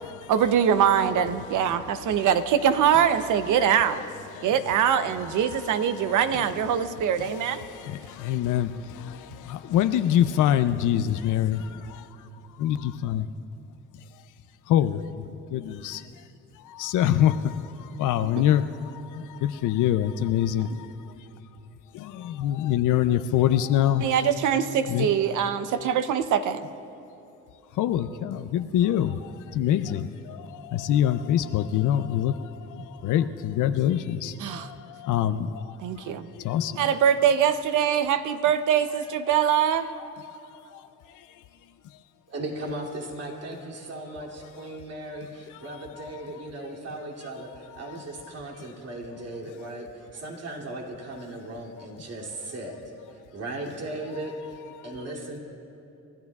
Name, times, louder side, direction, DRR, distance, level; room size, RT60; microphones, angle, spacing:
voice 1, 0.3-4.0 4.4-7.7 24.0-26.6 34.4-34.7 35.8-36.3 36.8-39.9, right 8 dB, 80° right, 11 dB, 0.8 m, -23 dB
voice 2, 5.1-6.3 7.2-13.3 13.9-14.2 14.7-16.3 16.5-21.3 21.9-24.4 24.9-25.1 27.7-36.9 40.0-41.4 41.8-42.0 45.5-46.5 47.7-48.0 54.8-54.9, left 10 dB, 85° left, 9 dB, 0.6 m, -26 dB
voice 3, 42.3-52.8 53.1-55.4, right 1 dB, 55° right, -1 dB, 2.7 m, -37 dB
29.5 x 14.0 x 2.4 m, 2.9 s
cardioid pair, 90°, 30 cm